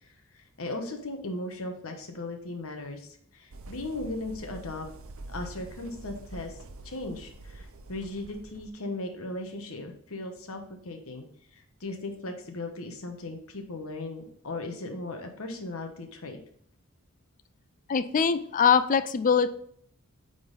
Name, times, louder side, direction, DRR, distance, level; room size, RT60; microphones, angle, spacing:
voice 1, 0.3-4.9 5.3-6.5 6.8-11.2 11.5-16.4, left 2 dB, 65° left, 4 dB, 1.2 m, -37 dB
sound 1, 3.5-8.7, right 2 dB, 65° right, 0.6 m, -45 dB
voice 2, 17.9-19.5, left 6 dB, 35° left, 12 dB, 0.4 m, -23 dB
8.6 x 4.0 x 4.0 m, 0.64 s
head